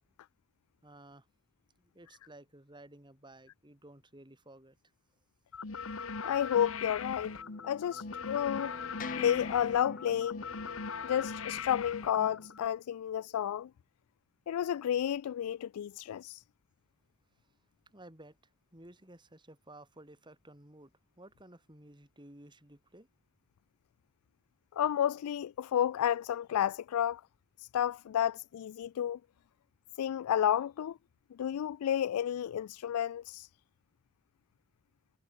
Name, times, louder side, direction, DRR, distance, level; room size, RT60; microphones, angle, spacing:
voice 1, 0.8-1.3 1.8-4.8 17.4-17.5 17.9-18.4 18.7-23.1, right 1 dB, 20° right, 3.1 m, -55 dB
sound 1, 5.5-12.7, left 5 dB, 65° left, 1.3 m, -40 dB
voice 2, 6.2-7.4 7.6-8.8 9.2-10.4 11.0-13.7 14.5-16.4 24.7-27.2 27.6-29.2 30.0-31.0 31.3-33.5, left 10 dB, 85° left, 0.3 m, -31 dB
sound 2, 6.8-12.5, left 3 dB, 40° left, 0.7 m, -46 dB
head